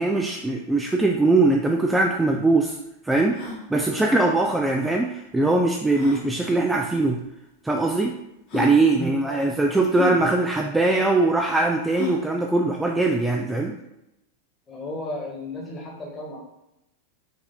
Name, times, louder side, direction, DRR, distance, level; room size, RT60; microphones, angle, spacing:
voice 1, 0.0-2.8 3.0-3.4 3.7-7.2 7.6-8.2 8.5-13.7, right 2 dB, 10° right, 1 dB, 0.3 m, -21 dB
sound 1, 1.7-1.8 2.0-2.1 2.6-2.7 3.2-3.6 4.9-5.0 5.9-6.3 7.2-7.3 8.1-8.2 8.5-8.8 9.9-10.2 11.9-12.3, left 4 dB, 45° left, 1.2 m, -32 dB
voice 2, 8.9-9.5 14.7-16.4, left 1 dB, 20° left, -2 dB, 1.3 m, -35 dB
4.7 x 2.6 x 3.6 m, 0.89 s
figure-of-eight pair, 90°, 0 cm